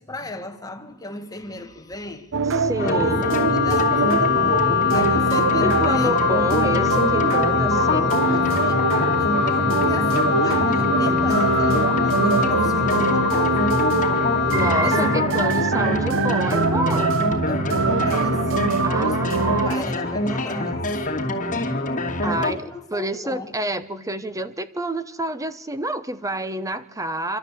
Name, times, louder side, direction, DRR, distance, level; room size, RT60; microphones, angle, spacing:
voice 1, 0.0-4.4 4.9-6.2 7.5-13.8 14.6-15.5 17.5-18.5 18.9-20.9 22.2-23.5, left 2 dB, 15° left, 1.7 m, -36 dB
sound 1, 2.3-19.7, right 4 dB, 60° right, 0.9 m, -24 dB
voice 2, 2.6-3.3 5.6-8.3 14.4-17.2 18.8-19.9 22.2-27.4, right 1 dB, 15° right, 0.9 m, -28 dB
Wind instrument woodwind instrument, 2.8-15.2, left 10 dB, 50° left, 1.3 m, -24 dB
sound 2, 2.8-22.5, left 1 dB, 35° left, 2.6 m, -26 dB
26.0 x 12.5 x 8.4 m
head